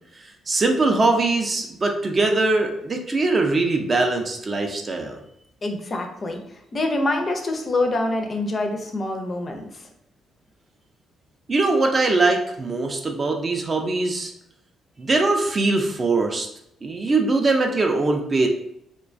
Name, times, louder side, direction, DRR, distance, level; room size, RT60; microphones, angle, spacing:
voice 1, 0.5-5.2 11.5-14.3 15.0-16.5 16.8-18.5, right 3 dB, 35° right, 3 dB, 0.4 m, -21 dB
voice 2, 5.6-6.4 6.7-9.9, left 2 dB, 35° left, 3 dB, 0.4 m, -25 dB
2.3 x 2.2 x 2.5 m, 0.77 s
cardioid pair, 90°, 0 cm